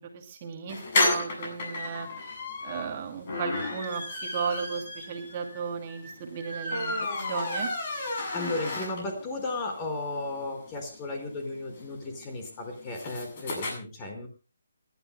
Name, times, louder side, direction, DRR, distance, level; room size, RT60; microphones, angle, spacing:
voice 1, 0.0-2.1 2.6-7.7, right 6 dB, 30° right, 3 dB, 2.5 m, -35 dB
sound 1, 0.7-9.3 9.7-9.8 10.0-10.1 10.3-13.7, left 2 dB, 35° left, 7.5 m, -32 dB
voice 2, 8.3-14.3, left 2 dB, 20° left, 3 dB, 4.9 m, -34 dB
28.5 x 12.5 x 2.2 m, 0.34 s
hypercardioid pair, 165°, 0 cm